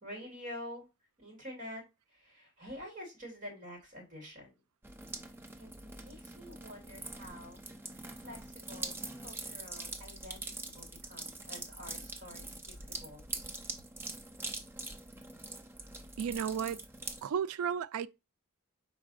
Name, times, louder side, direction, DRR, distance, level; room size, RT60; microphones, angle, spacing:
voice 1, 0.0-0.8 1.2-1.8 2.1-4.6 5.6-7.6 7.9-13.5, left 1 dB, 35° right, 2.6 m, -48 dB
sound 1, 4.8-17.2, right 2 dB, 10° right, 0.5 m, -44 dB
voice 2, 16.2-16.8 17.2-18.1, right 7 dB, 80° right, 0.3 m, -33 dB
5.2 x 3.9 x 2.4 m
head